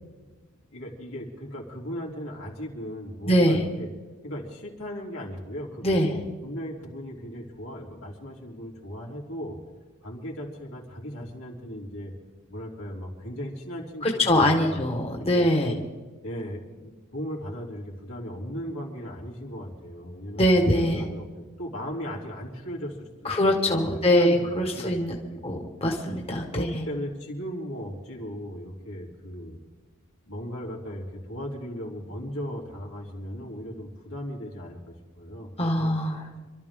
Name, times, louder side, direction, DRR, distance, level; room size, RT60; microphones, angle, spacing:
voice 1, 0.7-3.9 4.2-9.6 10.0-12.1 12.5-14.8 15.3-15.8 16.2-23.0 23.2-24.5 24.7-25.0 25.3-25.4 26.5-29.6 30.3-35.9, equal, 80° left, -3 dB, 3.6 m, -37 dB
voice 2, 3.2-3.6 5.8-6.1 14.0-15.7 20.4-21.0 23.2-25.1 25.4-26.8 35.6-36.2, left 1 dB, 30° left, 1 dB, 1.5 m, -23 dB
26.5 x 13.0 x 3.8 m, 1.3 s
head